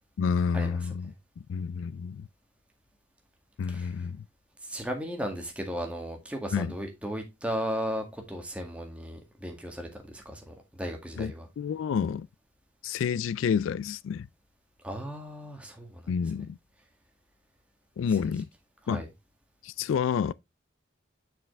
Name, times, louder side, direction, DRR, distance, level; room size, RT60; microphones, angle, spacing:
voice 1, 0.2-1.1 1.5-2.3 3.6-4.2 6.5-6.8 11.2-12.3 12.8-14.3 16.1-16.6 18.0-18.5 18.9-19.0 19.6-20.3, left 6 dB, 85° left, 0.3 m, -29 dB
voice 2, 4.7-11.5 14.8-16.1 18.9-19.1, equal, 5° right, 1.9 m, -35 dB
7.4 x 5.8 x 3.2 m
head